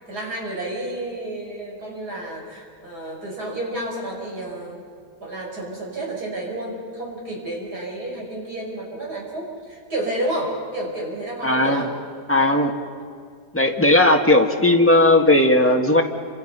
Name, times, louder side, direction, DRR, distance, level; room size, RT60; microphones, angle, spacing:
voice 1, 0.1-4.8 5.2-11.9, right 1 dB, 75° right, -2 dB, 6.2 m, -30 dB
voice 2, 11.4-11.8 12.3-12.7 13.5-16.0, left 1 dB, 10° left, 2 dB, 1.7 m, -16 dB
29.0 x 26.5 x 5.6 m, 2.1 s
omnidirectional pair, 1.7 m